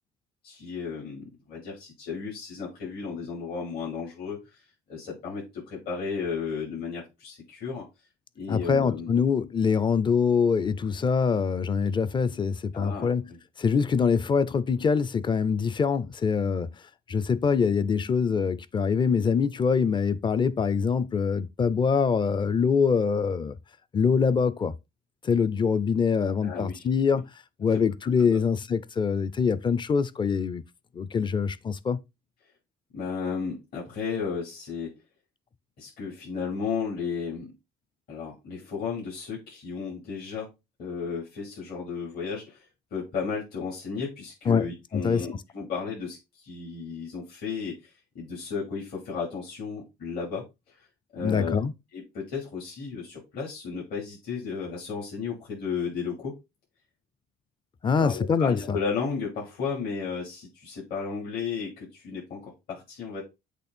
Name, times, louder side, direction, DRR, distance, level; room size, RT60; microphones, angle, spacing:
voice 1, 0.4-4.4 4.9-7.8 8.3-9.1 12.7-13.1 26.4-26.8 27.7-27.8 28.2-28.4 32.9-34.9 35.8-37.5 38.1-40.5 40.8-42.6 42.9-47.8 48.1-50.4 51.1-51.6 51.9-56.4 58.0-63.2, left 5 dB, 65° left, 4.4 m, -34 dB
voice 2, 8.5-13.3 13.6-16.7 17.1-23.5 23.9-24.7 25.2-27.2 27.6-30.6 30.9-32.0 44.5-44.7 44.9-45.3 51.2-51.7 57.8-58.8, left 6 dB, 25° left, 0.6 m, -24 dB
8.2 x 3.3 x 4.3 m
cardioid pair, 110°, 17 cm